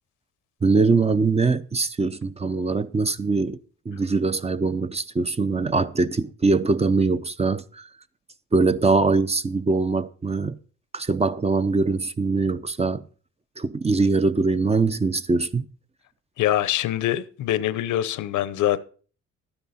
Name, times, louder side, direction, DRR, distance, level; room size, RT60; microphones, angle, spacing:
voice 1, 0.6-3.6 3.9-7.9 8.5-10.6 10.9-13.1 13.6-15.7, right 3 dB, 20° right, 0.6 m, -22 dB
voice 2, 16.4-18.8, left 12 dB, 80° left, 0.8 m, -24 dB
11.5 x 9.8 x 4.2 m
cardioid pair, 90°, 30 cm